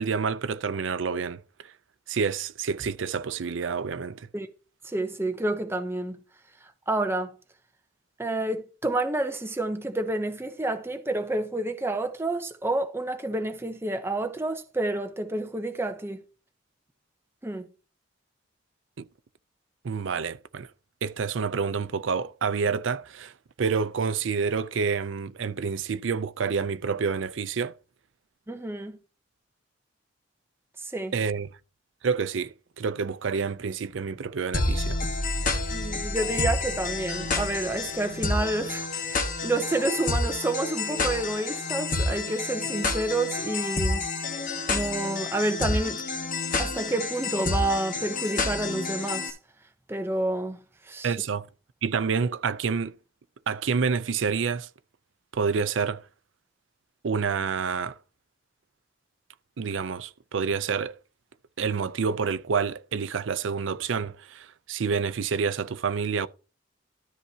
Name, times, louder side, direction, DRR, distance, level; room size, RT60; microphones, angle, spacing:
voice 1, 0.0-1.7 2.1-4.3 19.0-19.1 19.8-20.7 21.0-23.3 23.6-27.7 31.1-31.5 32.0-35.0 51.0-51.5 51.8-53.0 53.5-54.7 55.3-56.0 57.0-58.0 59.6-61.0 61.6-66.3, right 5 dB, 75° right, 0.5 m, -28 dB
voice 2, 4.8-6.2 6.9-7.4 8.2-16.2 17.4-17.7 28.5-29.0 30.9-31.1 35.7-44.0 44.7-46.0 46.6-49.4 49.9-51.1, right 2 dB, 15° right, 0.6 m, -29 dB
sound 1, 34.5-49.3, left 3 dB, 45° left, 1.4 m, -29 dB
13.0 x 5.8 x 2.8 m
head